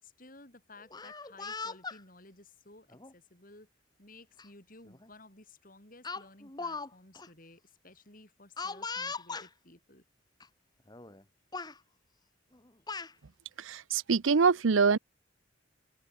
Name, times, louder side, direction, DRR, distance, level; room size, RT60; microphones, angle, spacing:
voice 1, 0.0-3.7 4.0-10.0, left 2 dB, 45° left, 5.0 m, -55 dB
Speech, 0.8-2.0 2.9-3.1 4.4-4.5 4.9-5.1 6.0-6.9 7.1-7.3 8.6-9.5 10.4-10.5 10.9-11.2 11.5-11.8 12.5-13.1, left 4 dB, 20° left, 1.8 m, -39 dB
voice 2, 13.6-15.0, right 5 dB, 80° right, 0.6 m, -25 dB
open air
head